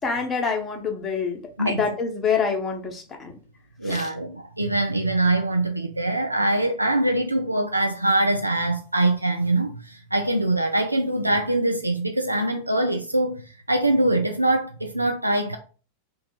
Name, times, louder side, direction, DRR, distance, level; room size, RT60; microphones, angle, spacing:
voice 1, 0.0-3.4 3.8-4.1, left 5 dB, 20° left, 0.8 m, -26 dB
voice 2, 3.8-13.4 13.7-15.6, right 1 dB, 85° right, 0.3 m, -23 dB
3.0 x 2.2 x 4.2 m
figure-of-eight pair, 90°, 0 cm